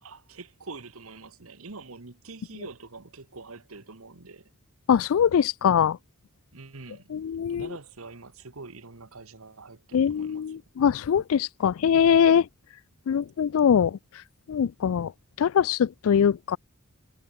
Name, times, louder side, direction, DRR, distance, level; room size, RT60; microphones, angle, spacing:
voice 1, 0.0-4.5 6.5-7.0 7.5-10.6, right 3 dB, 75° right, 1.6 m, -45 dB
voice 2, 4.9-6.0 7.1-7.7 9.9-12.5 13.1-14.0 14.5-15.1 15.4-16.6, left 8 dB, 70° left, 0.4 m, -22 dB
head